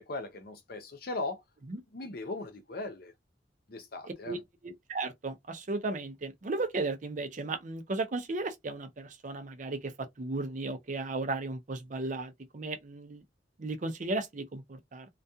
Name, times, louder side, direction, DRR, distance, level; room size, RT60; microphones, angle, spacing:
voice 1, 0.0-1.4 1.9-3.1 3.7-4.4, left 2 dB, 55° left, 0.6 m, -38 dB
voice 2, 4.0-4.4 4.6-13.2 13.6-15.1, right 3 dB, 45° right, 0.5 m, -35 dB
2.3 x 2.2 x 2.7 m
head